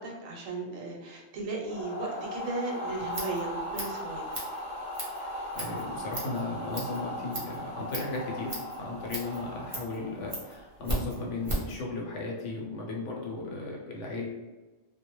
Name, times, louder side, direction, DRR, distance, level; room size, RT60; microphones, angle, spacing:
voice 1, 0.0-4.4, right 3 dB, 85° right, 0 dB, 1.0 m, -36 dB
sound 1, 1.6-10.7, left 1 dB, 45° left, 0.7 m, -38 dB
Scissors, 2.9-11.8, right 1 dB, 35° right, 0.6 m, -38 dB
voice 2, 5.2-14.3, left 2 dB, 70° left, -1 dB, 0.9 m, -36 dB
2.2 x 2.1 x 2.9 m, 1.2 s
omnidirectional pair, 1.4 m